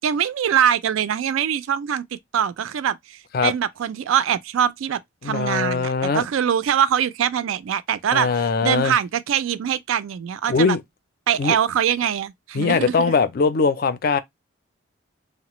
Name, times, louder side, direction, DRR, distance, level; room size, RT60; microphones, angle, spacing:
voice 1, 0.0-2.0 2.3-8.3 8.6-10.8 11.3-13.1, right 9 dB, 85° right, 0.3 m, -23 dB
voice 2, 5.2-6.3 8.1-8.9 10.5-10.8 11.4-11.6 12.5-14.2, left 4 dB, 50° left, 0.4 m, -21 dB
3.1 x 2.0 x 2.9 m
head